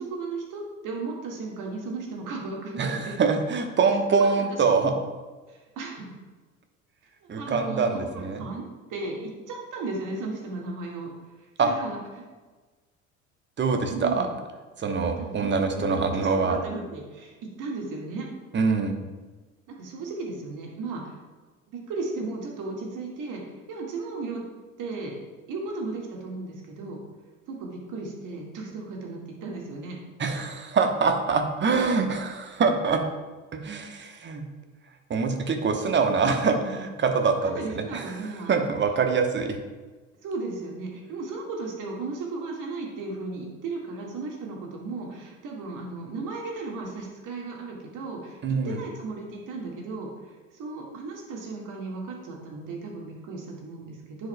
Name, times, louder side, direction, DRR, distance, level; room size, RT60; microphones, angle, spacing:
voice 1, 0.0-3.1 4.1-5.0 5.5-6.1 7.4-8.6 8.9-11.1 11.4-12.2 13.9-14.3 15.2-18.3 19.8-21.2 21.7-23.4 23.7-24.4 24.8-25.2 25.5-27.0 27.5-30.0 37.2-38.5 40.2-48.4 48.6-54.3, right 3 dB, 50° right, -1 dB, 1.7 m, -35 dB
voice 2, 2.8-4.9 7.3-8.4 11.6-11.7 13.6-14.3 14.8-16.6 18.5-19.0 30.2-33.0 33.5-34.4 35.1-38.1 38.5-39.6 48.4-48.8, right 5 dB, 25° right, 5 dB, 1.0 m, -24 dB
10.0 x 5.0 x 2.2 m, 1.3 s
hypercardioid pair, 70°, 40 cm